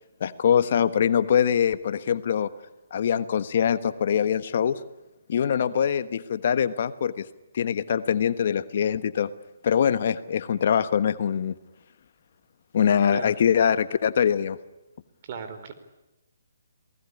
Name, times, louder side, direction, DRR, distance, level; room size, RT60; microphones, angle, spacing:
voice 1, 0.2-2.5 2.9-4.8 5.3-7.3 7.5-9.3 9.6-11.5 12.7-14.6, left 8 dB, 55° left, 13 dB, 1.3 m, -23 dB
voice 2, 15.2-15.7, right 6 dB, 40° right, 8 dB, 4.4 m, -36 dB
28.0 x 19.5 x 10.0 m, 0.98 s
hypercardioid pair, 145°, 0 cm